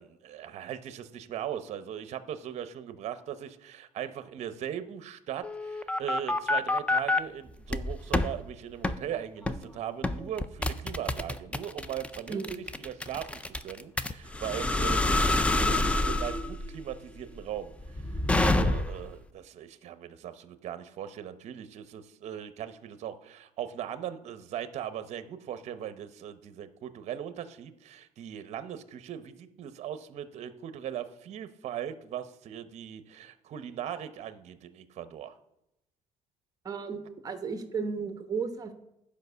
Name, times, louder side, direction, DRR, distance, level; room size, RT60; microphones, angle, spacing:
voice 1, 0.0-17.7 18.4-35.3, right 10 dB, 50° right, 12 dB, 0.8 m, -39 dB
sound 1, 5.4-7.2 7.7-8.3 8.8-9.0 9.5-9.7 10.0-19.1, left 2 dB, 10° left, 0.4 m, -27 dB
voice 2, 36.6-38.7, right 5 dB, 25° right, 7 dB, 1.0 m, -34 dB
10.5 x 5.1 x 6.8 m, 0.85 s
cardioid pair, 145°, 14 cm